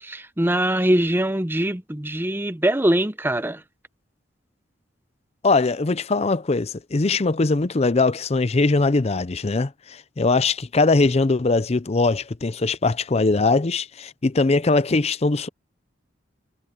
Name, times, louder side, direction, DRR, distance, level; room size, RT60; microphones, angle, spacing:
voice 1, 0.0-3.6, right 1 dB, 10° right, 0.8 m, -22 dB
voice 2, 5.4-15.5, left 3 dB, 35° left, 0.6 m, -21 dB
head